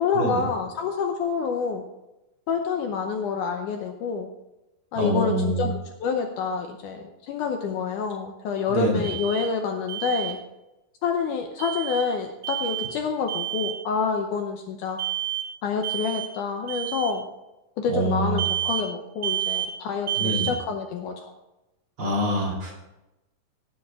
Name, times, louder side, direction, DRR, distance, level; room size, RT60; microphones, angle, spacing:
voice 1, 0.0-1.8 2.5-4.3 4.9-10.4 11.0-15.0 15.6-17.3 17.8-21.3, left 5 dB, 75° left, 4 dB, 2.1 m, -27 dB
voice 2, 4.9-5.7 8.7-9.0 17.9-18.5 20.2-20.5 22.0-22.8, right 1 dB, 40° right, -2 dB, 3.2 m, -25 dB
Alarm, 9.0-9.5 9.9-10.3 11.6-12.0 12.4-12.9 13.3-13.8 15.0-15.5 15.8-16.3 16.7-17.1 18.4-18.9 19.2-19.7 20.1-20.5, right 13 dB, 60° right, 0.9 m, -29 dB
18.0 x 7.3 x 3.6 m, 0.97 s
omnidirectional pair, 4.2 m